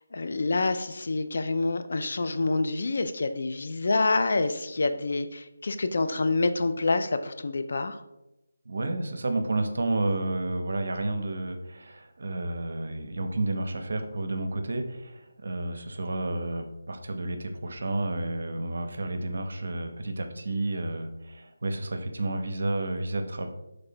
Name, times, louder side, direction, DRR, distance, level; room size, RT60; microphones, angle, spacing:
voice 1, 0.1-8.0, left 3 dB, 60° left, 9 dB, 0.3 m, -27 dB
voice 2, 8.7-23.5, right 2 dB, 60° right, 6 dB, 0.5 m, -31 dB
3.1 x 2.8 x 4.2 m, 0.93 s
figure-of-eight pair, 155°, 0 cm